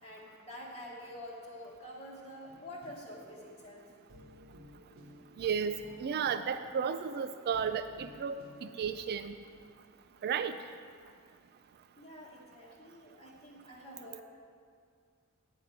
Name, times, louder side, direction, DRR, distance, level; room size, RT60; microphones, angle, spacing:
voice 1, 0.0-3.9 12.0-14.2, left 1 dB, 25° left, -7 dB, 1.1 m, -47 dB
sound 1, 2.5-8.9, equal, 65° right, 1.2 m, -56 dB
voice 2, 5.4-9.3 10.2-10.5, right 7 dB, 50° right, 10 dB, 0.3 m, -33 dB
10.0 x 5.0 x 8.0 m, 2.2 s
head